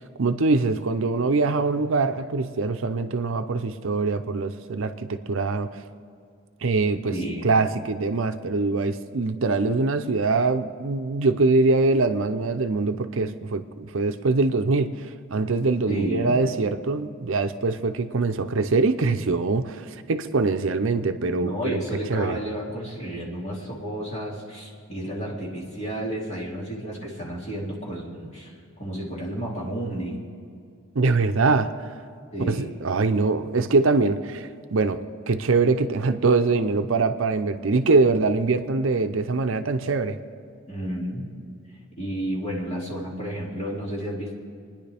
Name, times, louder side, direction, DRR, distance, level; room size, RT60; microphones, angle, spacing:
voice 1, 0.2-5.7 6.6-7.1 7.4-15.0 15.3-21.5 22.1-22.4 31.0-31.7 32.4-40.2, right 3 dB, 65° right, 8 dB, 0.6 m, -23 dB
voice 2, 7.1-7.6 15.9-16.4 21.4-28.5 28.8-30.2 32.3-32.8 40.7-41.3 42.0-44.3, right 1 dB, 30° left, -4 dB, 2.6 m, -31 dB
29.0 x 10.0 x 3.5 m, 2.3 s
head